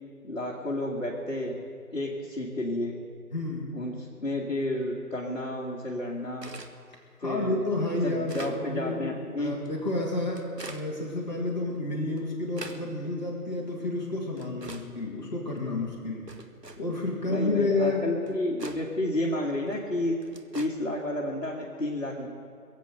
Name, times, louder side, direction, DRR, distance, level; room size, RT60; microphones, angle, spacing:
voice 1, 0.2-1.6 1.9-2.9 3.7-6.5 7.2-7.6 8.0-9.6 17.3-20.1 20.5-22.3, left 1 dB, 50° left, -5 dB, 2.1 m, -31 dB
voice 2, 3.3-3.7 7.2-9.0 9.4-16.3 16.8-18.1, left 2 dB, 25° left, -3 dB, 2.1 m, -30 dB
sound 1, 6.4-6.7 7.4-7.5 8.0-8.6 9.5-9.7 10.3-10.9 11.7-11.8 12.2-12.8 13.6-13.7 14.4-14.9 15.5-15.6 16.3-16.8 17.8-17.9 18.3-18.8 19.7-19.8 20.2-20.7, right 2 dB, 85° right, 1.5 m, -42 dB
21.5 x 7.9 x 7.8 m, 2.5 s
figure-of-eight pair, 160°, 48 cm